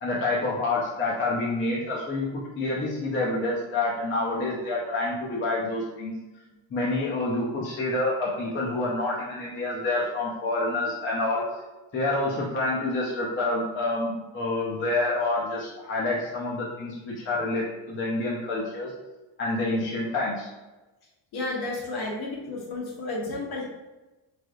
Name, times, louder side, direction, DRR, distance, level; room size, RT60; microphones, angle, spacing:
voice 1, 0.0-6.1 6.7-11.4 11.9-18.9 19.4-20.5, left 2 dB, 25° left, -6 dB, 0.6 m, -28 dB
voice 2, 21.3-23.7, left 2 dB, 50° left, -3 dB, 1.3 m, -32 dB
4.8 x 3.3 x 2.4 m, 1.1 s
cardioid pair, 165°, 47 cm